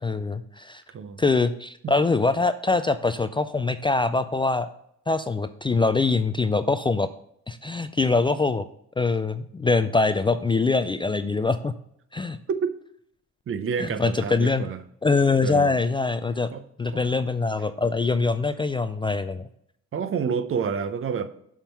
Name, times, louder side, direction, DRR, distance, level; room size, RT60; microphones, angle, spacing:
voice 1, 0.0-0.8 1.2-4.7 5.1-7.1 7.5-8.6 9.0-11.7 12.1-12.4 13.8-14.7 15.0-16.5 16.8-19.5, left 3 dB, 15° left, 0.3 m, -23 dB
voice 2, 0.9-1.2 1.8-2.0 12.5-12.7 13.5-14.8 15.4-15.7 16.5-16.6 16.9-17.0 19.9-21.3, right 6 dB, 45° right, 0.7 m, -28 dB
7.2 x 3.7 x 5.5 m
cardioid pair, 90°, 30 cm